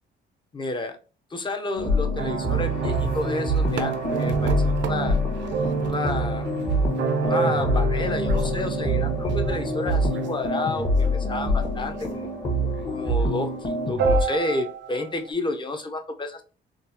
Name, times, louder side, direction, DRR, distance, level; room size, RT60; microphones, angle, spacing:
voice 1, 0.5-1.0 1.3-5.2 5.8-6.5 7.2-12.3 12.9-16.4, left 2 dB, 25° left, 5 dB, 0.7 m, -30 dB
sound 1, 1.8-14.2, equal, 40° left, 1.2 m, -25 dB
sound 2, 2.2-10.5 11.0-11.1 12.0-12.1 12.8-12.9 13.1-13.4 14.0-15.3, right 5 dB, 65° right, 0.6 m, -28 dB
3.7 x 2.3 x 2.7 m, 0.35 s
cardioid pair, 90°, 20 cm